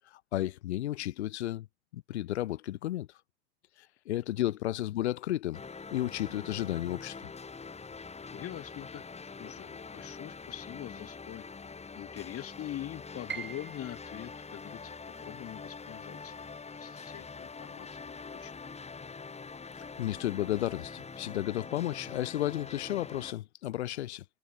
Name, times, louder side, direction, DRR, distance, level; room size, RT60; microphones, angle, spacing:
voice 1, 0.1-1.7 1.9-3.1 3.8-5.6 5.9-7.2 20.0-24.2, left 14 dB, 80° left, 0.8 m, -33 dB
sound 1, 5.5-23.3, left 4 dB, 20° left, 1.9 m, -44 dB
voice 2, 8.3-9.1 9.4-11.5 12.0-14.9 15.2-16.5 16.7-18.5, left 13 dB, 45° left, 1.5 m, -43 dB
Piano, 13.3-19.2 19.6-20.7 21.1-21.2 21.9-22.3, right 7 dB, 35° right, 4.7 m, -48 dB
hypercardioid pair, 65°, 33 cm